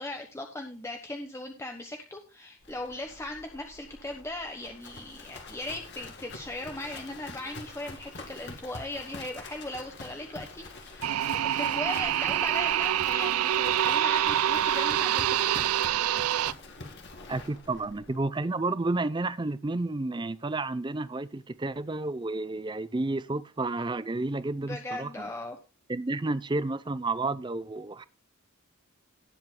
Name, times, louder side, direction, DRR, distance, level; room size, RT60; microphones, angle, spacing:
voice 1, 0.0-11.2 11.5-15.7 24.6-25.6, left 1 dB, 15° left, 1.0 m, -38 dB
Livestock farm animals working animals, 2.6-18.2, left 3 dB, 50° left, 2.2 m, -45 dB
sound 1, 11.0-16.5, right 11 dB, 85° right, 0.4 m, -26 dB
voice 2, 17.3-25.3 25.9-28.0, right 2 dB, 20° right, 0.5 m, -31 dB
18.0 x 7.9 x 2.2 m
head